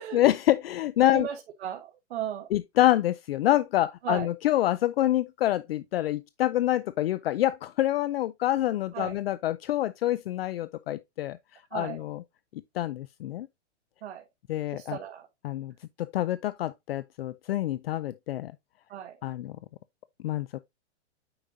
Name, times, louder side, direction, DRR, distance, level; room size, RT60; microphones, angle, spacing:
voice 1, 0.0-1.3 2.5-11.4 11.7-12.2 12.8-13.5 14.5-15.0 15.4-15.7 16.0-18.5 19.2-19.6 20.2-20.5, left 13 dB, 55° left, 0.5 m, -26 dB
voice 2, 1.1-2.5 4.0-4.3 8.9-9.1 11.7-12.0 14.0-14.2 14.7-15.3 18.9-19.2, right 10 dB, 60° right, 1.5 m, -36 dB
8.7 x 5.2 x 2.6 m
hypercardioid pair, 165°, 35 cm